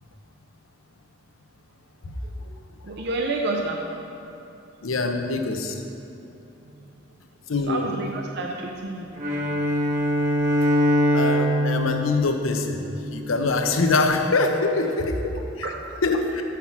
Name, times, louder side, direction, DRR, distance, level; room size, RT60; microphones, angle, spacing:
voice 1, 2.2-2.5 2.8-3.8 7.6-9.1 15.6-15.9, right 2 dB, 55° right, 1 dB, 0.6 m, -29 dB
voice 2, 4.8-5.8 7.5-7.9 11.1-15.7 16.0-16.4, left 3 dB, 85° left, 4 dB, 0.8 m, -24 dB
Bowed string instrument, 9.2-13.4, equal, 40° right, 1.2 m, -23 dB
7.3 x 5.8 x 5.9 m, 2.8 s
head